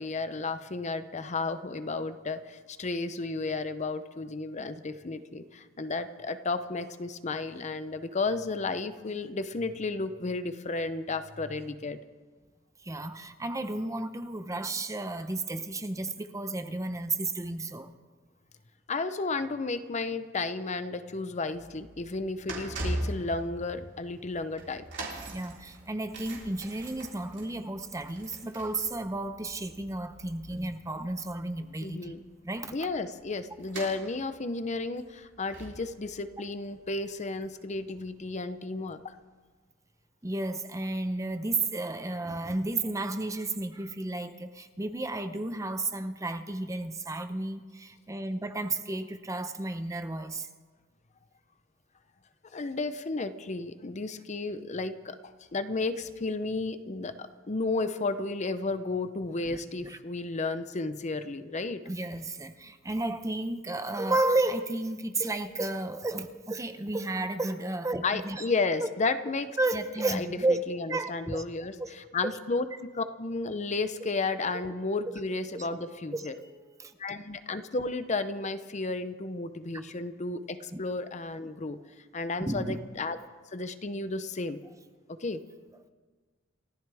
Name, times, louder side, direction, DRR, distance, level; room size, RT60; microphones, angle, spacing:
voice 1, 0.0-12.0 18.9-24.9 31.8-32.2 32.7-39.2 52.5-61.8 68.0-69.6 70.1-76.4 77.0-81.8 82.1-83.2 83.5-84.6 85.2-85.4, left 3 dB, 35° left, 11 dB, 0.6 m, -33 dB
voice 2, 12.8-17.9 25.3-32.1 32.4-32.7 40.2-50.5 59.5-60.0 61.9-68.5 68.8-68.9 69.6-70.6 70.9-71.4 71.8-71.9 72.2-72.3 74.0-74.1 75.1-75.2 75.5-75.7 76.1-77.0 80.7-80.8 82.4-82.8, right 2 dB, 15° right, 9 dB, 0.7 m, -32 dB
sound 1, 21.4-37.8 38.0-38.3 39.0-39.1, right 1 dB, 60° right, 3.6 m, -42 dB
29.0 x 14.0 x 3.5 m, 1.4 s
head